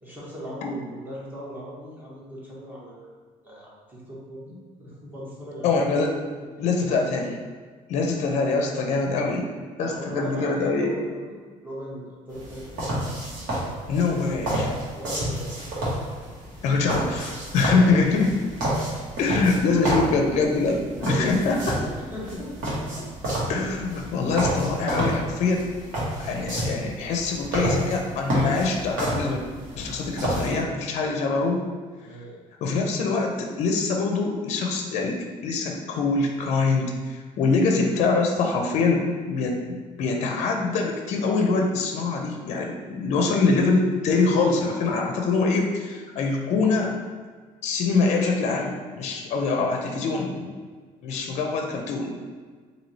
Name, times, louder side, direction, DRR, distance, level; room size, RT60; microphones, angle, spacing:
voice 1, 0.0-3.1 3.4-5.8 6.5-7.1 9.9-12.9 14.9-15.5 17.7-18.0 19.7-20.0 21.0-22.5 23.0-23.1 32.0-32.4 49.7-49.9, equal, 15° right, -6 dB, 0.9 m, -38 dB
voice 2, 5.6-6.1 6.6-7.3 7.9-9.5 9.8-10.9 13.9-14.7 16.6-18.4 19.2-21.7 23.5-25.6 26.2-29.4 29.8-31.6 32.6-47.0 47.6-50.5 51.0-52.3, left 4 dB, 55° left, 2 dB, 0.5 m, -24 dB
sound 1, 12.3-30.6, right 1 dB, 80° right, 1.4 m, -30 dB
3.1 x 2.7 x 4.0 m, 1.5 s
cardioid pair, 165°, 14 cm